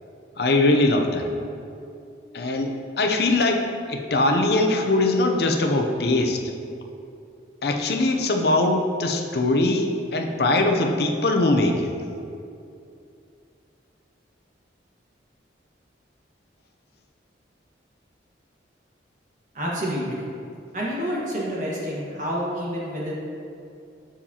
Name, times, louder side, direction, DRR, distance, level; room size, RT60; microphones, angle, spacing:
voice 1, 0.4-1.3 2.3-6.4 7.6-11.9, left 2 dB, 55° left, 4 dB, 0.6 m, -21 dB
voice 2, 19.5-20.3 20.7-23.1, equal, 40° right, -5 dB, 1.5 m, -28 dB
7.1 x 7.1 x 2.9 m, 2.6 s
head